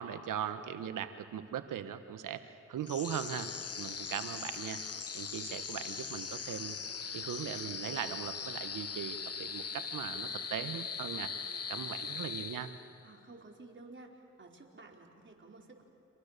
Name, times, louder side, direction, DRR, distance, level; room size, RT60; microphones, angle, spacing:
voice 1, 0.0-2.4 2.7-3.5 3.8-4.8 5.1-6.8 7.1-11.3 11.7-12.7, right 9 dB, 85° right, 10 dB, 1.4 m, -39 dB
sound 1, 2.8-13.1, left 6 dB, 50° left, 1.4 m, -40 dB
voice 2, 13.0-15.8, right 2 dB, 40° right, 0 dB, 4.8 m, -53 dB
30.0 x 25.5 x 6.9 m, 2.6 s
supercardioid pair, 50°, 31 cm